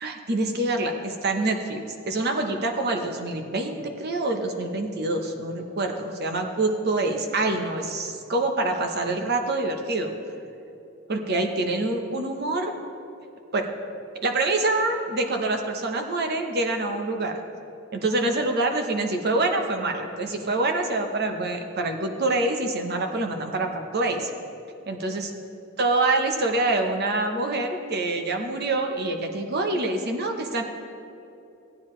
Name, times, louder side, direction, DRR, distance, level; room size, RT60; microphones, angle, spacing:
voice 1, 0.0-1.8 2.1-10.1 11.1-12.7 13.5-13.7 14.2-17.4 17.9-24.3 24.9-25.3 25.8-30.6, right 2 dB, 50° right, 4 dB, 1.0 m, -26 dB
16.0 x 9.5 x 3.2 m, 2.8 s
head